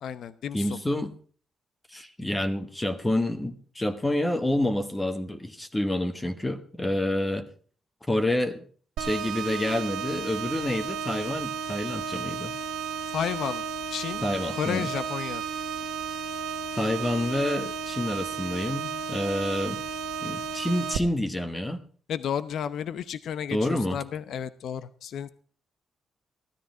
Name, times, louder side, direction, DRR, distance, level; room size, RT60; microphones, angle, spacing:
voice 1, 0.0-0.8 13.1-13.6 13.9-14.2 14.5-15.4 22.1-25.3, left 8 dB, 70° left, 14 dB, 0.8 m, -32 dB
voice 2, 0.5-1.1 1.9-7.5 8.1-8.6 9.0-12.5 14.2-14.9 16.7-19.8 20.2-21.8 23.5-24.0, left 1 dB, 10° left, 9 dB, 1.4 m, -28 dB
sound 1, 9.0-21.0, right 6 dB, 90° right, 1.2 m, -33 dB
16.0 x 13.0 x 4.5 m, 0.43 s
cardioid pair, 125°, 0 cm